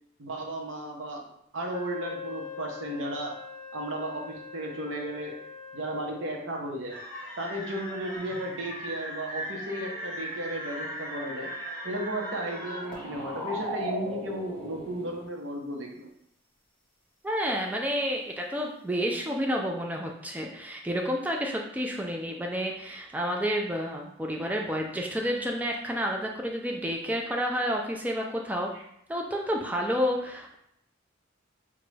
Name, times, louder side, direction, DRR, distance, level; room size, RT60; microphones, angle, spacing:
voice 1, 0.2-1.2 1.5-3.4 3.7-5.4 5.7-7.0 7.4-11.5 11.8-16.1 28.7-28.8, right 1 dB, 80° right, 1 dB, 0.7 m, -34 dB
Wind instrument woodwind instrument, 1.7-6.5, left 5 dB, 50° left, 0.5 m, -42 dB
sound 1, 6.9-15.2, right 1 dB, 5° left, 1.2 m, -38 dB
voice 2, 17.2-28.7 29.1-30.5, equal, 10° right, 0 dB, 0.3 m, -30 dB
4.9 x 2.2 x 3.2 m, 0.74 s
head